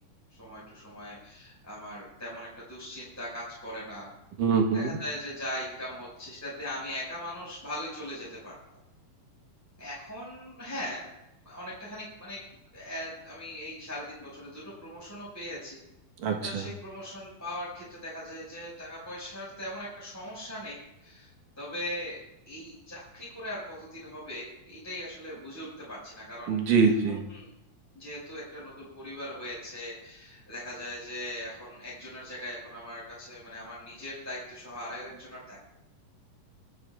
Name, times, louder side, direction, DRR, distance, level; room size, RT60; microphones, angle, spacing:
voice 1, 0.4-4.1 4.7-8.5 9.8-11.1 11.4-12.4 12.7-15.8 16.4-21.3 21.6-22.2 22.5-26.6 27.0-27.5 27.9-35.6, left 1 dB, 5° left, -7 dB, 5.2 m, -40 dB
voice 2, 4.4-5.0 16.2-16.7 26.5-27.2, right 5 dB, 70° right, 3 dB, 2.6 m, -24 dB
24.5 x 11.0 x 2.4 m, 0.87 s
omnidirectional pair, 4.2 m